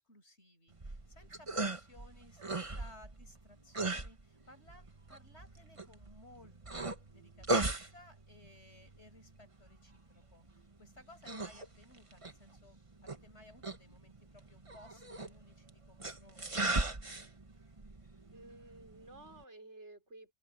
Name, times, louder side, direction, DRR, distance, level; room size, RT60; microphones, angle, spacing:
voice 1, 0.0-16.8, left 1 dB, 75° left, 6.7 m, -60 dB
sound 1, 0.7-19.4, right 2 dB, 30° right, 1.4 m, -40 dB
voice 2, 18.3-20.3, right 2 dB, 80° right, 5.2 m, -53 dB
omnidirectional pair, 1.2 m